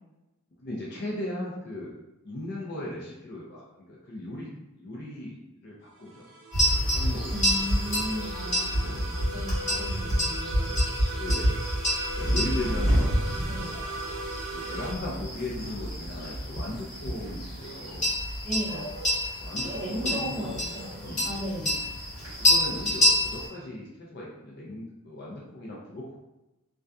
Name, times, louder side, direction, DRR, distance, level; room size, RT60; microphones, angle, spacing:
voice 1, 0.6-1.9 2.2-3.6 3.9-4.5 4.8-5.4 5.6-6.2 6.9-7.3 8.7-9.1 11.2-11.6 12.1-13.2 13.5-13.7 14.5-18.1 19.4-20.7 21.0-21.3 22.4-26.2, left 1 dB, 45° left, -5 dB, 0.5 m, -37 dB
voice 2, 1.1-1.5 7.3-10.7 12.6-12.8 13.5-13.7 18.4-18.9 19.5-20.9 21.2-21.8, equal, ahead, -12 dB, 1.3 m, -36 dB
sound 1, 5.8-14.9, right 2 dB, 60° right, 0.6 m, -39 dB
sound 2, 6.5-23.5, equal, 30° left, 1.4 m, -28 dB
2.6 x 2.3 x 2.3 m, 0.96 s
head